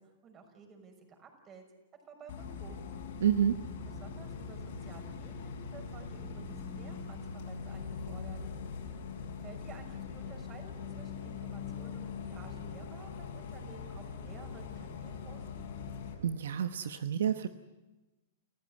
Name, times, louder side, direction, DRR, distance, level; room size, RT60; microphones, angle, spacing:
voice 1, 0.0-1.6 2.1-3.0 3.9-8.4 9.4-15.4, right 5 dB, 30° right, 5 dB, 6.3 m, -53 dB
Bus, 2.3-16.1, left 5 dB, 70° left, 6.4 m, -42 dB
voice 2, 3.2-3.6 16.2-17.5, right 9 dB, 80° right, 10 dB, 1.0 m, -29 dB
29.5 x 15.0 x 9.8 m, 1.1 s
hypercardioid pair, 120°, 0 cm